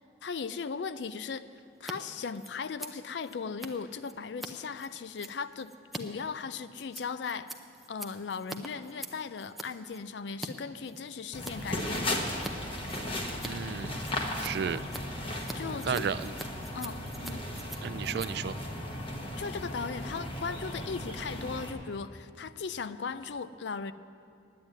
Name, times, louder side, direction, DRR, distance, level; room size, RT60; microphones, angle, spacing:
voice 1, 0.2-1.4 1.8-7.5 7.9-12.3 15.5-16.0 16.7-17.4 19.4-23.9, left 5 dB, 70° left, 13 dB, 0.4 m, -37 dB
Scissors, 1.7-1.9 2.2-10.5 10.8-11.6 11.9-12.5 12.8-19.6, right 1 dB, ahead, 0.6 m, -45 dB
sound 1, 11.3-21.7, left 1 dB, 30° left, 1.2 m, -36 dB
voice 2, 13.4-14.0 14.4-14.8 15.8-16.3 17.8-18.6, right 6 dB, 60° right, 15 dB, 0.3 m, -33 dB
9.3 x 9.0 x 9.3 m, 2.6 s
head